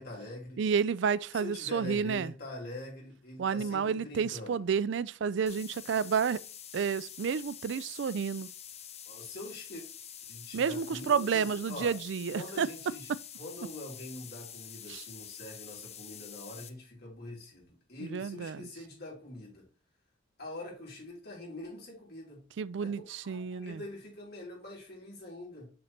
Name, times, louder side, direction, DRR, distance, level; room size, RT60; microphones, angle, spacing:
voice 1, 0.0-0.6 1.3-4.7 9.0-9.8 10.2-11.9 12.3-13.1 13.4-19.7 20.4-22.4 22.8-25.7, left 1 dB, 55° left, 3.2 m, -44 dB
voice 2, 0.6-2.3 3.4-6.4 6.7-8.5 10.5-12.7 14.9-15.0 18.1-18.7 22.6-23.8, right 6 dB, 65° right, 0.4 m, -30 dB
sound 1, 5.5-16.7, left 9 dB, 35° left, 0.7 m, -47 dB
6.4 x 6.0 x 2.9 m
head